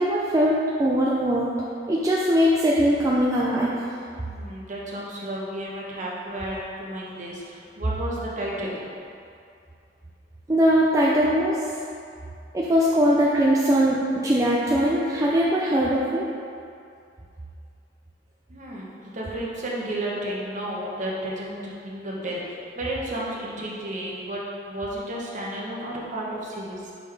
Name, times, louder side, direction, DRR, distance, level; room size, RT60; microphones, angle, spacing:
voice 1, 0.0-1.5 1.9-3.7 10.5-11.6 12.5-16.3, equal, 20° right, -5 dB, 0.4 m, -21 dB
voice 2, 4.3-8.9 18.5-18.9 19.1-26.9, right 1 dB, 45° right, -5 dB, 1.1 m, -32 dB
5.5 x 5.2 x 3.4 m, 2.5 s
head